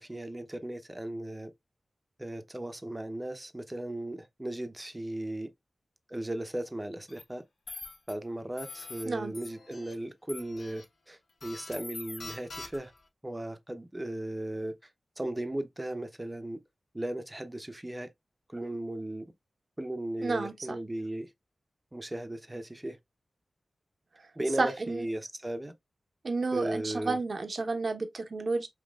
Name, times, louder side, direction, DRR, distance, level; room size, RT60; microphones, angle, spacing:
voice 1, 0.0-1.5 2.2-5.5 6.1-7.5 8.1-12.9 13.2-14.7 15.2-16.6 16.9-18.1 18.5-19.3 19.8-21.3 21.9-23.0 24.4-25.7 26.5-27.2, right 1 dB, 15° right, 0.7 m, -36 dB
sound 1, 7.1-7.2 7.7-8.1 8.6-9.0 9.3-9.9 10.3-10.8 11.4-13.0, left 3 dB, 70° left, 1.1 m, -44 dB
voice 2, 20.2-20.8 24.1-24.3 24.6-25.0 26.2-28.7, right 3 dB, 60° right, 0.8 m, -31 dB
5.3 x 2.9 x 2.3 m
wide cardioid pair, 70°, 0 cm